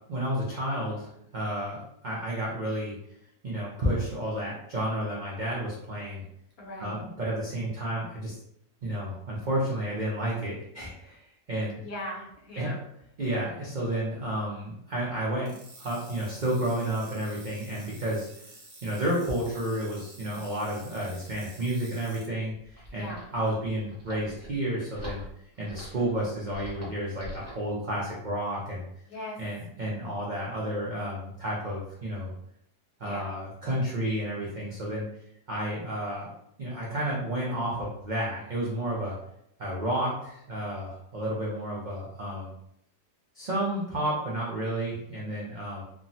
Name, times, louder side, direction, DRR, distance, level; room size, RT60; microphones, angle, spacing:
voice 1, 0.1-2.9 3.4-6.2 6.8-8.4 8.8-11.8 12.6-12.7 13.2-18.3 18.8-25.2 25.6-28.8 29.4-32.3 33.0-35.0 35.5-36.3 36.6-39.2 39.6-42.5 43.3-45.8, right 1 dB, 85° right, -5 dB, 0.4 m, -31 dB
voice 2, 6.6-7.0 11.7-12.8 22.9-23.3 29.1-29.4 33.0-33.3, left 1 dB, 65° left, -4 dB, 1.2 m, -39 dB
sound 1, 15.5-22.3, right 2 dB, 45° right, 0.9 m, -50 dB
sound 2, 22.6-27.7, equal, 20° right, 0.4 m, -45 dB
3.4 x 2.0 x 2.6 m, 0.74 s
omnidirectional pair, 1.7 m